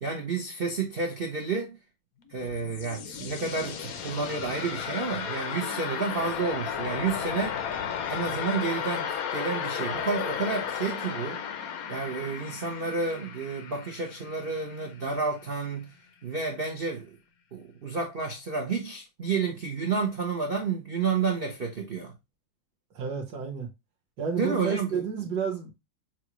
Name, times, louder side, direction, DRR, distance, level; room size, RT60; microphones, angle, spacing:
voice 1, 0.0-1.8 2.3-7.6 8.1-11.4 11.9-15.9 16.2-17.1 17.5-22.1 24.4-24.9, right 4 dB, 85° right, 0.5 m, -30 dB
sound 1, 2.2-15.1, left 8 dB, 80° left, 0.8 m, -34 dB
voice 2, 22.9-23.7 24.2-25.7, right 6 dB, 55° right, 1.4 m, -31 dB
6.0 x 2.5 x 3.0 m
omnidirectional pair, 2.3 m